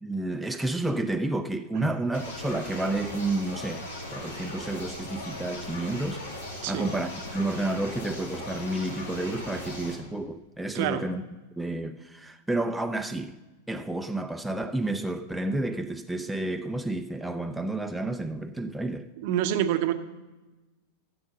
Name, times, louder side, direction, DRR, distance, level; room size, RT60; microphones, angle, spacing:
voice 1, 0.0-3.9 4.1-6.2 6.6-11.2 11.6-13.4 13.7-19.1, right 2 dB, 5° right, 0.5 m, -30 dB
sound 1, 2.1-9.9, left 1 dB, 65° left, 2.3 m, -38 dB
voice 2, 19.2-19.9, right 11 dB, 50° right, 0.7 m, -26 dB
13.0 x 7.7 x 5.2 m
figure-of-eight pair, 90°, 0 cm